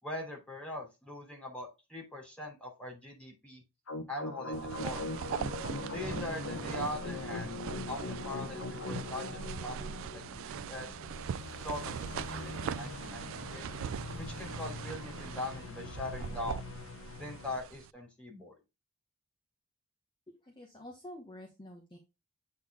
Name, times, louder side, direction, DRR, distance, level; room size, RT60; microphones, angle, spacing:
voice 1, 0.0-3.6 4.1-5.1 5.9-7.6 7.9-11.0 11.6-13.7 14.2-16.7 17.2-18.6, left 1 dB, 5° left, 0 dB, 3.1 m, -41 dB
sound 1, 3.9-17.6, left 2 dB, 65° left, 1.1 m, -42 dB
sound 2, 4.5-17.9, right 8 dB, 65° right, 0.3 m, -41 dB
voice 2, 20.3-22.0, left 1 dB, 20° left, 0 dB, 1.3 m, -49 dB
8.3 x 4.0 x 3.6 m, 0.25 s
head